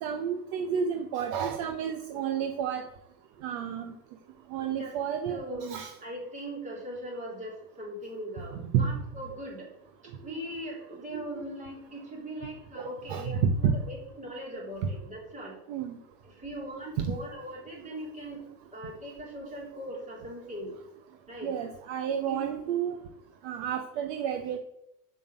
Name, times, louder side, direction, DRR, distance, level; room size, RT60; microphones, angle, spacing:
voice 1, 0.0-2.8 3.4-3.9 4.5-5.9 8.5-8.9 10.5-10.6 11.1-11.4 12.8-13.8 15.7-16.0 17.0-17.1 21.4-23.0 23.4-24.6, right 7 dB, 50° right, 7 dB, 0.9 m, -30 dB
voice 2, 4.6-4.9 5.3-5.7 6.0-9.7 10.2-15.6 16.2-18.4 18.7-20.7 21.3-21.5 22.2-22.4, equal, 15° right, -2 dB, 3.4 m, -40 dB
7.3 x 6.3 x 7.9 m, 0.81 s
supercardioid pair, 170°, 45 cm